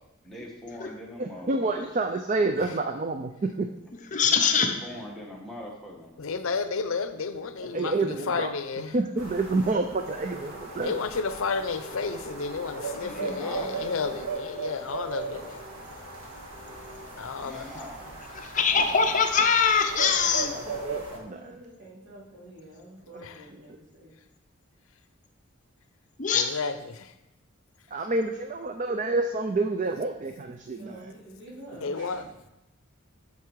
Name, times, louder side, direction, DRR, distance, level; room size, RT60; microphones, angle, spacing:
voice 1, 0.2-1.9 4.4-6.1 13.0-13.7 17.4-19.1 26.3-26.5, left 1 dB, ahead, -3 dB, 1.3 m, -42 dB
voice 2, 1.2-3.7 7.6-8.5 8.9-11.1 14.8-14.9 20.7-21.5 27.9-31.1, right 3 dB, 35° right, 6 dB, 0.4 m, -28 dB
voice 3, 3.4-4.1 13.6-14.3 21.1-24.1 30.8-32.3, right 1 dB, 65° right, -6 dB, 3.6 m, -48 dB
voice 4, 4.1-5.0 13.0-13.4 18.3-20.5 26.2-26.5, left 6 dB, 35° left, 5 dB, 0.6 m, -23 dB
voice 5, 6.2-8.9 10.8-15.4 17.2-17.6 26.3-27.1 31.8-32.2, left 4 dB, 75° left, 10 dB, 0.6 m, -31 dB
sound 1, 9.2-21.2, right 3 dB, 90° right, 1.7 m, -38 dB
8.4 x 6.7 x 4.6 m, 0.92 s
head